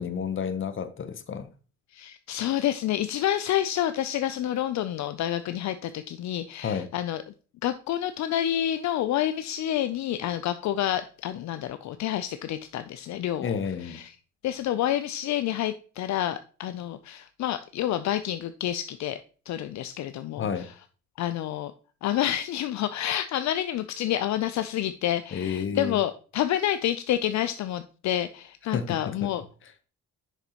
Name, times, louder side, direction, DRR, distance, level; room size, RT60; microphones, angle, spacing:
voice 1, 0.0-1.5 6.6-6.9 13.4-14.0 20.4-20.7 25.3-26.0 28.7-29.3, left 6 dB, 40° left, 0.9 m, -31 dB
voice 2, 1.9-7.2 7.6-13.5 13.8-14.1 14.4-19.2 19.5-20.7 21.2-21.7 22.0-29.4, left 12 dB, 65° left, 0.5 m, -28 dB
6.7 x 6.0 x 2.9 m
cardioid pair, 90°, 30 cm